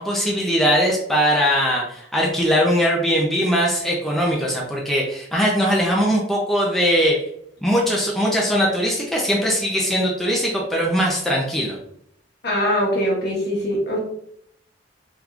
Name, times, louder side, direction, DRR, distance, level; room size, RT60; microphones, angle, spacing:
voice 1, 0.0-7.2 7.6-11.8, equal, ahead, -3 dB, 0.5 m, -20 dB
voice 2, 12.4-14.0, equal, 60° left, -2 dB, 1.2 m, -22 dB
3.7 x 2.9 x 2.4 m, 0.70 s
head